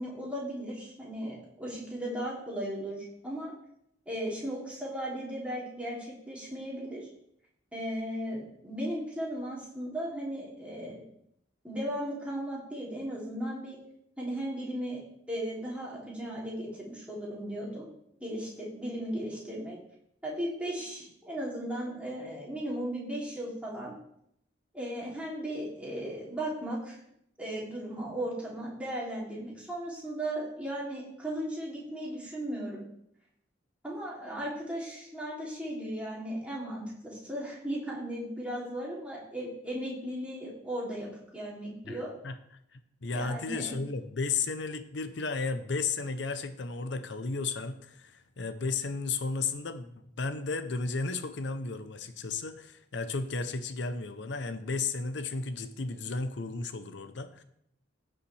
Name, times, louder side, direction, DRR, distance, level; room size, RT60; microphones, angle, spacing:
voice 1, 0.0-3.5 4.1-7.1 7.7-11.0 11.6-13.8 14.2-15.0 15.3-17.9 18.2-19.8 20.2-23.9 24.7-27.0 27.4-32.8 33.8-42.1 43.1-43.7, right 1 dB, 5° right, -6 dB, 2.8 m, -36 dB
voice 2, 41.8-42.4 42.7-57.4, left 4 dB, 70° left, 10 dB, 0.7 m, -34 dB
16.0 x 5.4 x 3.3 m, 0.73 s
head